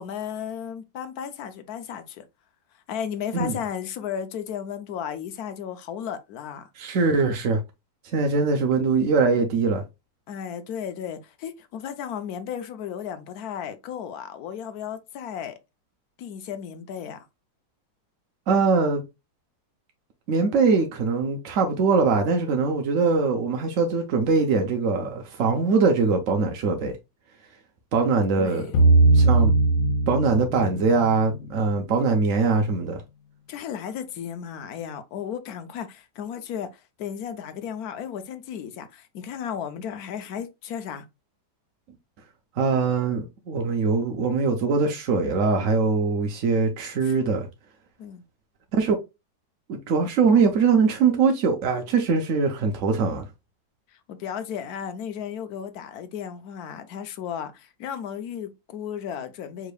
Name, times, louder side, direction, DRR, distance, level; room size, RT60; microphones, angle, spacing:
voice 1, 0.0-2.2 2.9-6.7 10.3-15.6 16.2-17.3 28.4-28.9 33.5-41.1 47.0-47.3 48.0-48.2 53.9-59.7, left 8 dB, 65° left, 1.0 m, -34 dB
voice 2, 6.8-7.6 8.1-9.8 18.5-19.0 20.3-26.9 27.9-28.7 29.1-29.5 30.1-33.0 42.6-47.5 48.7-49.0 49.7-53.3, right 4 dB, 60° right, 0.8 m, -22 dB
sound 1, 28.7-31.9, right 2 dB, 90° left, 1.5 m, -20 dB
5.0 x 3.6 x 2.2 m
omnidirectional pair, 2.0 m